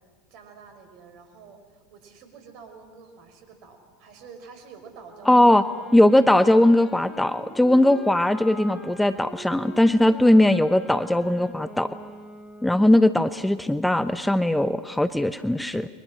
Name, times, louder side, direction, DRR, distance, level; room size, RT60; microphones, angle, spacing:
voice 1, 0.3-5.6 8.0-8.1, right 5 dB, 55° right, 6 dB, 5.6 m, -48 dB
Wind instrument woodwind instrument, 5.0-13.4, equal, 25° left, 5.0 m, -43 dB
voice 2, 5.3-5.6 5.9-11.9 12.6-15.9, left 1 dB, 5° left, 13 dB, 0.9 m, -19 dB
30.0 x 23.5 x 6.4 m, 1.5 s
hypercardioid pair, 85°, 0 cm